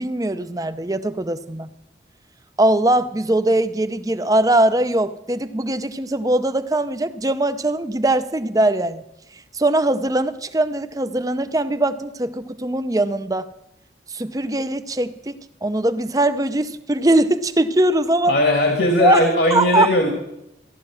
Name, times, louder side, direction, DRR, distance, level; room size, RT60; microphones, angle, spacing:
voice 1, 0.0-1.7 2.6-9.0 9.5-13.5 14.1-18.4 19.0-19.9, right 1 dB, 20° right, 11 dB, 0.6 m, -21 dB
voice 2, 18.3-20.1, left 1 dB, 70° left, 2 dB, 2.2 m, -18 dB
15.5 x 12.5 x 6.3 m, 0.87 s
head